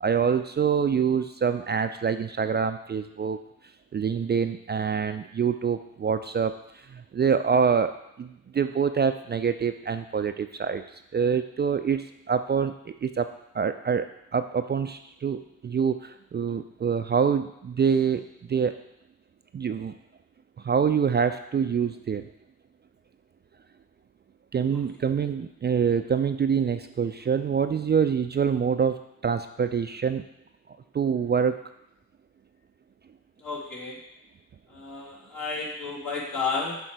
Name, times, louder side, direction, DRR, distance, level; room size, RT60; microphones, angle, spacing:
voice 1, 0.0-3.4 3.9-7.9 8.2-13.3 13.5-14.1 14.3-18.2 18.5-18.8 19.5-20.0 20.6-22.3 24.5-30.2 30.9-31.6, right 6 dB, 30° right, 9 dB, 0.4 m, -25 dB
voice 2, 33.4-34.0 34.7-36.8, left 4 dB, 65° left, -3 dB, 2.1 m, -32 dB
6.6 x 3.7 x 4.6 m, 0.81 s
supercardioid pair, 40°, 36 cm